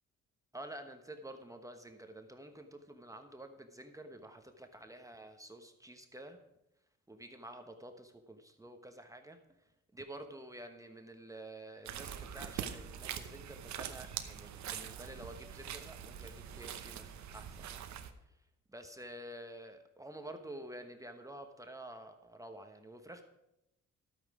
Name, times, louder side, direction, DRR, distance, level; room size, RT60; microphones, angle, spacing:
voice 1, 0.5-6.4 7.1-17.8 18.3-18.4 18.7-23.2, right 1 dB, 10° right, 6 dB, 1.1 m, -49 dB
sound 1, 11.9-18.1, right 9 dB, 70° right, 1.0 m, -44 dB
12.0 x 8.8 x 4.9 m, 0.89 s
cardioid pair, 90°, 30 cm